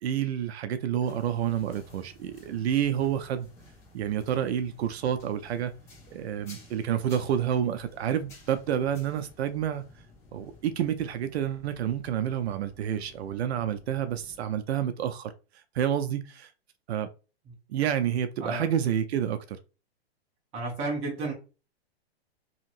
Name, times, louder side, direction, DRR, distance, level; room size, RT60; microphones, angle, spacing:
voice 1, 0.0-3.5 3.9-5.7 6.1-9.8 10.3-15.3 15.7-16.5 16.9-17.1 17.7-19.6, right 9 dB, 75° right, 0.5 m, -29 dB
sound 1, 1.0-14.6, left 2 dB, 10° left, 0.3 m, -53 dB
voice 2, 20.5-21.3, right 2 dB, 20° right, 0.8 m, -32 dB
2.9 x 2.8 x 2.5 m
hypercardioid pair, 155°, 32 cm